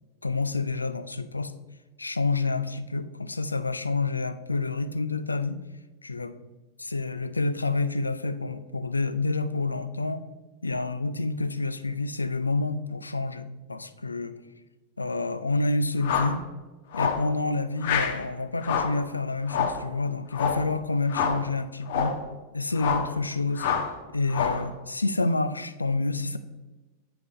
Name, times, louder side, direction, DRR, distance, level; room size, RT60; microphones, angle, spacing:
voice 1, 0.2-1.5 2.0-5.6 6.0-6.3 6.8-10.2 10.6-14.4 15.0-16.5 16.9-22.2 22.5-23.7 24.1-26.4, left 3 dB, 80° left, 11 dB, 0.4 m, -28 dB
sound 1, 16.0-16.4 16.9-17.3 17.8-18.2 18.6-19.0 19.5-19.8 20.3-20.7 21.1-21.4 21.9-22.2 22.8-23.1 23.6-23.9 24.3-24.7, left 6 dB, 55° left, 0.8 m, -27 dB
7.9 x 5.0 x 3.6 m, 1.2 s
figure-of-eight pair, 90°, 0 cm